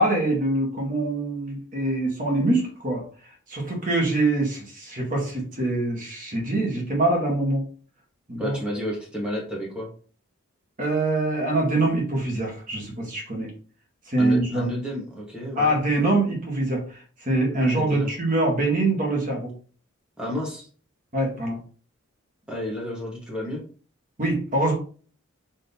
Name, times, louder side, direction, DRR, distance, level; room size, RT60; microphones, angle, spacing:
voice 1, 0.0-3.0 3.5-7.6 8.3-8.6 10.8-13.5 14.1-14.7 15.5-19.5 21.1-21.6 24.2-24.7, right 2 dB, 35° right, 0 dB, 1.3 m, -24 dB
voice 2, 8.3-9.9 14.2-15.8 17.6-18.1 20.2-20.7 22.5-23.6, equal, 5° right, -3 dB, 1.1 m, -31 dB
4.4 x 2.8 x 3.4 m, 0.42 s
head